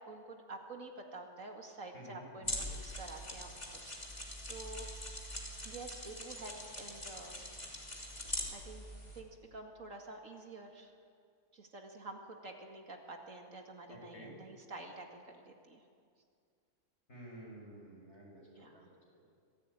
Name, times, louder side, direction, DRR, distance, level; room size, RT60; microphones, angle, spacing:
voice 1, 0.0-4.9 5.6-7.4 8.5-8.8 9.1-10.9 11.5-15.8 18.6-18.9, right 2 dB, 65° right, 2 dB, 2.5 m, -49 dB
voice 2, 1.9-2.6 13.9-14.3 17.1-19.3, right 1 dB, 50° left, -2 dB, 6.9 m, -52 dB
sound 1, 2.4-9.2, left 1 dB, 30° left, 3.1 m, -43 dB
25.5 x 16.0 x 9.0 m, 2.3 s
omnidirectional pair, 1.5 m